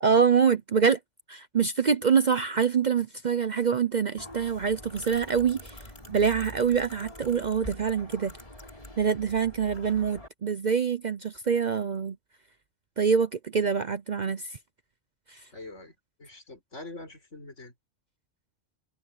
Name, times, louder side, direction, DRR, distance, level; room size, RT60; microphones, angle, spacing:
voice 1, 0.0-1.0 1.3-5.8 6.1-8.3 9.0-12.2 13.0-14.6 15.3-15.4, right 6 dB, 45° right, 0.7 m, -25 dB
sound 1, 4.2-10.3, left 1 dB, 30° left, 5.5 m, -45 dB
voice 2, 15.5-17.7, left 2 dB, 75° left, 5.7 m, -44 dB
omnidirectional pair, 1.3 m